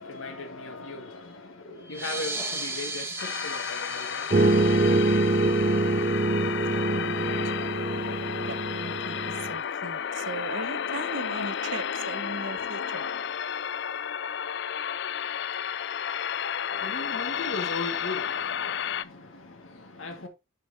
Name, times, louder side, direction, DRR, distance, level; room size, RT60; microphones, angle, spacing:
voice 1, 0.0-5.5 16.7-20.3, left 2 dB, 80° left, 1.8 m, -39 dB
sound 1, 1.8-7.0, right 2 dB, 10° right, 1.2 m, -37 dB
sound 2, 3.2-19.0, left 8 dB, 60° left, 0.4 m, -32 dB
sound 3, 4.3-9.5, right 2 dB, 40° right, 0.5 m, -25 dB
voice 2, 6.4-7.8 8.4-13.1, right 3 dB, 65° right, 1.0 m, -39 dB
11.0 x 5.4 x 2.7 m
head